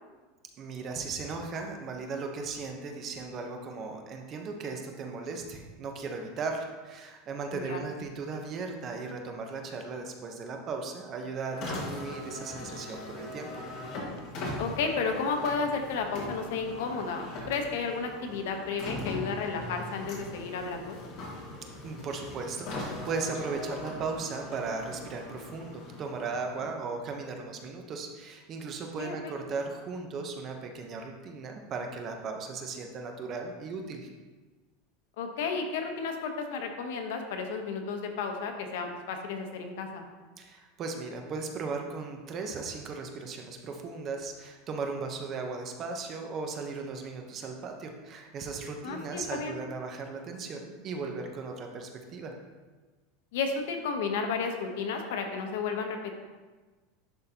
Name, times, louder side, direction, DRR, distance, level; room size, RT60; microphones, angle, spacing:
voice 1, 0.6-13.6 21.8-34.1 40.4-52.3, right 4 dB, 30° right, 3 dB, 0.7 m, -37 dB
voice 2, 7.5-7.8 14.6-21.0 29.0-29.3 35.2-40.0 48.8-49.6 53.3-56.2, left 5 dB, 75° left, 4 dB, 0.9 m, -32 dB
Car, 11.5-26.9, left 2 dB, 45° left, 1.6 m, -40 dB
10.5 x 3.7 x 2.8 m, 1.3 s
supercardioid pair, 150°, 0 cm